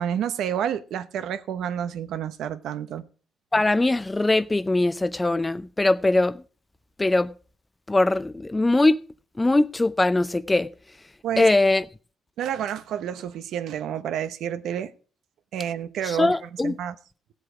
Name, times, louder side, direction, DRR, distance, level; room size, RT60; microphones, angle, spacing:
voice 1, 0.0-3.0 11.2-11.5 12.4-14.9 15.5-17.0, right 9 dB, 80° right, 0.9 m, -29 dB
voice 2, 3.5-6.4 7.0-7.3 7.9-9.0 9.4-10.7 11.4-11.8 16.1-16.7, left 2 dB, 15° left, 0.6 m, -21 dB
15.5 x 7.6 x 4.8 m
cardioid pair, 90°, 0 cm